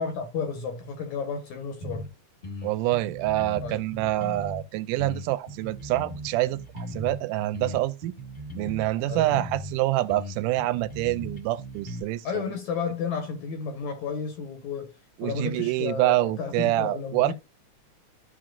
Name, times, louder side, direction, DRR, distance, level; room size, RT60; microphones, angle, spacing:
voice 1, 0.0-2.1 3.6-3.8 9.1-9.3 12.2-14.9 15.2-17.3, left 5 dB, 70° left, 2.5 m, -32 dB
sound 1, 1.8-2.1 2.4-4.6 5.0-7.2 7.5-9.7 10.1-12.0, equal, 25° left, 1.2 m, -38 dB
voice 2, 2.6-8.1 8.6-12.5 15.2-17.3, right 16 dB, 90° right, 2.1 m, -26 dB
14.0 x 4.9 x 2.5 m
omnidirectional pair, 3.6 m